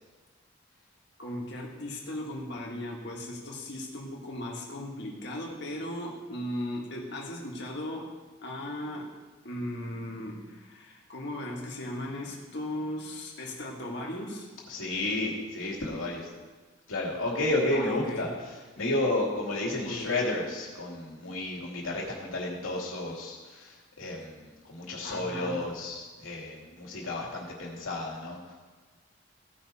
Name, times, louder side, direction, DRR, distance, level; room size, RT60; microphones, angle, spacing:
voice 1, 1.2-8.1 8.4-9.1 9.4-14.5 17.7-18.3 19.8-20.1 25.0-25.6, left 1 dB, 55° left, -2 dB, 1.9 m, -37 dB
voice 2, 14.7-16.3 16.9-28.5, left 2 dB, 80° left, -2 dB, 2.5 m, -32 dB
16.0 x 5.9 x 4.2 m, 1.3 s
head